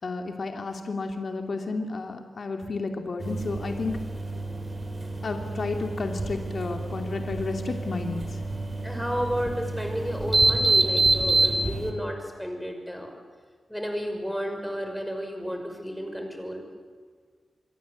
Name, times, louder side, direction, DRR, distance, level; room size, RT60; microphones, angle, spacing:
voice 1, 0.0-4.0 5.2-8.4, left 3 dB, 55° left, 4 dB, 2.8 m, -32 dB
sound 1, 3.2-11.9, right 2 dB, 25° right, 3.8 m, -27 dB
voice 2, 8.8-13.1 13.7-16.7, equal, ahead, 4 dB, 5.8 m, -32 dB
28.0 x 22.5 x 8.3 m, 1.5 s
wide cardioid pair, 105°, 0 cm